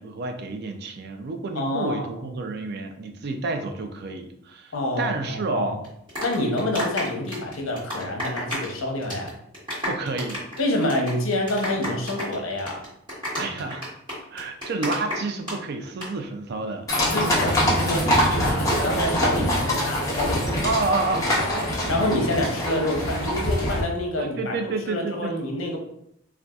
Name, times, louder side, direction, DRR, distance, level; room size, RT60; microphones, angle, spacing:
voice 1, 0.0-5.8 9.9-10.4 13.4-13.8 14.3-16.9 20.6-21.5 21.8-21.9 24.2-25.3, right 3 dB, 50° right, 6 dB, 0.4 m, -29 dB
voice 2, 1.5-2.1 4.7-5.7 6.2-9.3 10.6-12.8 17.0-20.6 21.4-24.5 24.9-25.8, left 1 dB, 70° left, 1 dB, 0.7 m, -27 dB
sound 1, 5.8-8.8 9.0-9.3 9.5-15.6 15.8-16.1, equal, 25° right, 1.3 m, -31 dB
sound 2, 16.9-23.8, equal, 15° left, 0.7 m, -24 dB
3.9 x 2.3 x 2.3 m, 0.74 s
head